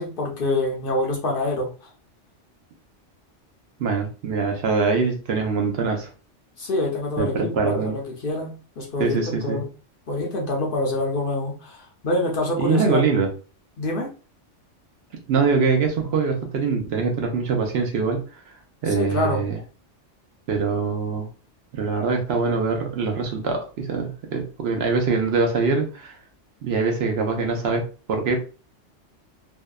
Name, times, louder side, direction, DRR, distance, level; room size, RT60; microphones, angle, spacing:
voice 1, 0.0-1.7 6.6-9.7 10.1-13.0 13.8-14.1 18.9-19.5, left 2 dB, 60° left, -1 dB, 0.7 m, -26 dB
voice 2, 3.8-6.1 7.2-7.9 9.0-9.6 12.6-13.3 15.3-18.2 18.8-19.6 20.5-21.3 21.7-26.2 26.6-28.4, right 4 dB, 65° right, 3 dB, 0.8 m, -23 dB
2.7 x 2.1 x 2.2 m, 0.35 s
omnidirectional pair, 1.2 m